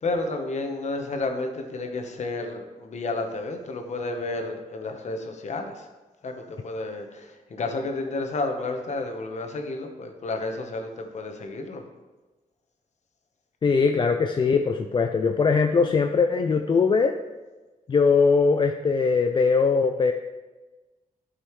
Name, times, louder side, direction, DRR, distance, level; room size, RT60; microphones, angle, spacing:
voice 1, 0.0-5.8 6.2-11.8, left 2 dB, 55° left, 4 dB, 1.1 m, -31 dB
voice 2, 13.6-17.2 17.9-20.1, left 5 dB, 35° left, 5 dB, 0.4 m, -21 dB
11.5 x 5.5 x 3.1 m, 1.2 s
wide cardioid pair, 130°, 14 cm